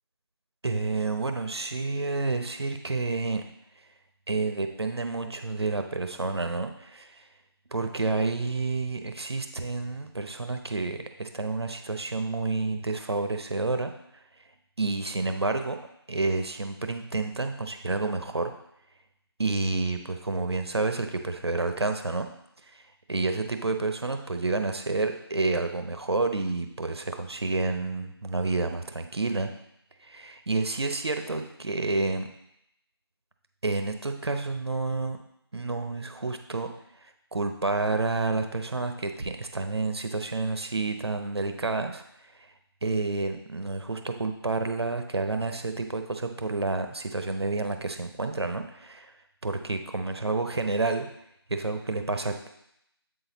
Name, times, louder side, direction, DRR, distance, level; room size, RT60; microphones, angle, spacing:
voice 1, 0.6-3.4 4.3-7.1 7.7-13.9 14.8-15.8 16.1-18.5 19.4-22.3 22.7-22.8 23.1-29.5 30.0-32.3 33.6-35.2 35.5-36.7 37.3-42.0 42.8-49.1 49.4-51.1 51.5-52.5, right 3 dB, 75° right, 6 dB, 0.8 m, -29 dB
7.9 x 4.0 x 4.0 m, 0.78 s
figure-of-eight pair, 170°, 14 cm